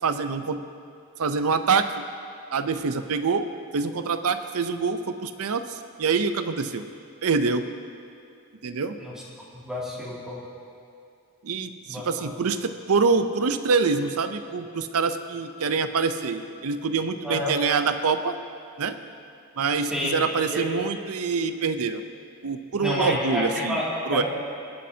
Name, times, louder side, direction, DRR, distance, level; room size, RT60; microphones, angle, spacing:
voice 1, 0.0-0.6 1.2-2.1 2.5-3.5 3.7-6.9 7.2-7.7 8.6-9.0 11.4-18.4 18.8-19.0 19.6-22.0 22.4-23.8 24.0-24.2, right 4 dB, 70° right, 10 dB, 0.6 m, -25 dB
voice 2, 9.6-10.4 11.9-12.0 17.2-17.5 19.9-20.1 20.5-20.7 22.8-23.8 24.1-24.2, left 1 dB, 5° right, -7 dB, 2.4 m, -29 dB
23.5 x 8.5 x 2.8 m, 2.4 s
head